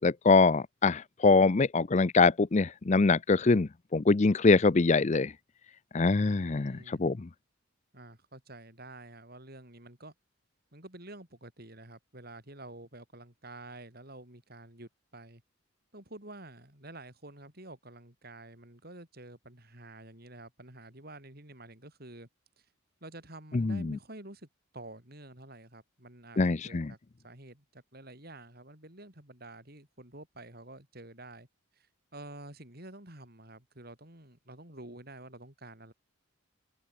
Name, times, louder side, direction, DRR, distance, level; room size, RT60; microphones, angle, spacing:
voice 1, 0.0-5.3 5.9-7.3 23.5-24.0 26.4-26.9, left 3 dB, 35° left, 0.5 m, -24 dB
voice 2, 6.2-7.1 7.9-10.1 10.7-15.4 15.9-22.3 22.6-22.7 23.0-24.5 24.7-27.0 27.2-31.5 31.7-35.9, right 2 dB, 50° right, 5.6 m, -49 dB
open air
head